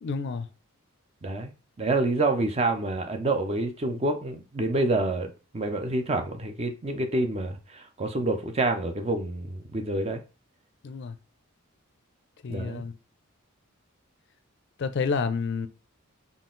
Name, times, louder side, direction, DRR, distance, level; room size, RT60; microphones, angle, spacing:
voice 1, 0.0-0.5 10.8-11.2 12.4-12.9 14.8-15.7, left 5 dB, 55° left, 0.4 m, -29 dB
voice 2, 1.2-1.5 1.8-10.2 12.5-12.8, right 2 dB, 30° right, 0.5 m, -27 dB
3.8 x 2.4 x 3.8 m
head